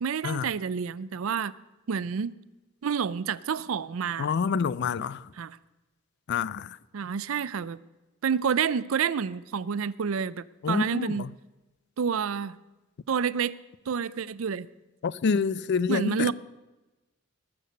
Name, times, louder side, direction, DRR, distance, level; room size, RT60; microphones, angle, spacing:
voice 1, 0.0-1.5 1.9-2.4 2.8-4.3 5.4-5.6 6.9-7.8 8.2-11.2 12.0-12.6 13.1-13.6 13.9-14.7 15.9-16.3, right 6 dB, 70° right, 0.5 m, -29 dB
voice 2, 4.2-5.3 6.3-6.8 10.6-11.3 15.0-16.3, left 5 dB, 55° left, 0.4 m, -27 dB
20.5 x 6.9 x 6.5 m
head